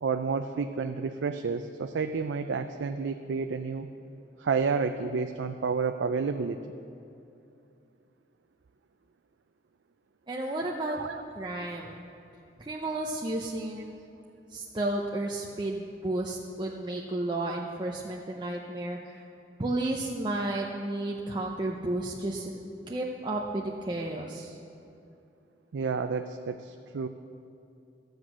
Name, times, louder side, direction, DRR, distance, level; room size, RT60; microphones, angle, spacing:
voice 1, 0.0-3.9 4.4-6.6 10.9-11.2 25.7-27.1, right 5 dB, 90° right, 7 dB, 0.4 m, -30 dB
voice 2, 10.3-11.0 11.4-12.1 12.6-14.0 14.5-19.2 19.6-22.5 22.9-24.6, right 2 dB, 25° right, -2 dB, 0.7 m, -32 dB
14.0 x 7.9 x 6.1 m, 2.7 s
head